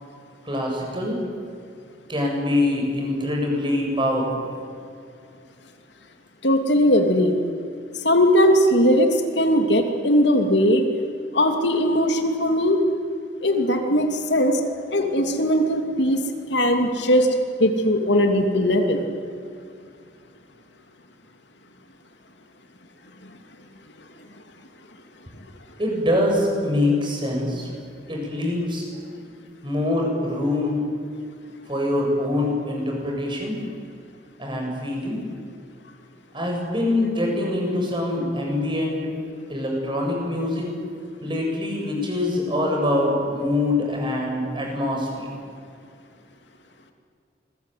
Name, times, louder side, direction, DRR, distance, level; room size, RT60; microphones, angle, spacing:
voice 1, 0.4-1.2 2.1-4.5 25.8-27.7 28.1-28.8 29.6-30.9 31.7-33.6 34.4-35.2 36.3-39.0 39.5-40.7 41.2-45.3, left 1 dB, 25° right, 0 dB, 7.9 m, -24 dB
voice 2, 6.4-7.4 8.0-10.9 11.3-12.8 13.4-14.6 14.9-16.2 16.5-17.3 17.6-19.0, equal, 70° left, 4 dB, 2.9 m, -19 dB
28.0 x 22.5 x 9.5 m, 2.3 s
head